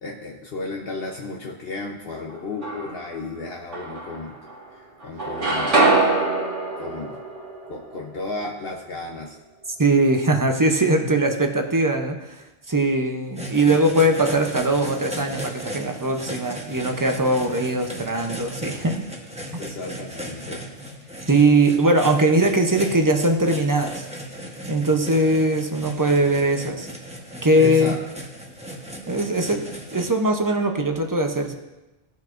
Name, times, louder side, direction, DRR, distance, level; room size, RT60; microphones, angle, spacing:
voice 1, 0.0-4.4 4.7-5.9 6.8-7.2 7.7-9.4 11.0-11.1 19.6-20.6 21.0-21.2 27.6-28.0, left 3 dB, 60° left, 0 dB, 1.0 m, -33 dB
sound 1, 2.3-3.2 3.7-4.7 5.0-9.0, right 3 dB, 80° right, 2.2 m, -24 dB
voice 2, 9.8-12.2 12.7-19.0 21.3-24.1 24.7-26.9 27.4-28.0 29.1-31.6, right 1 dB, 20° right, 4 dB, 0.6 m, -20 dB
sound 2, 13.3-30.1, right 1 dB, 5° right, 1.0 m, -36 dB
16.5 x 6.2 x 2.6 m, 1.0 s
omnidirectional pair, 1.2 m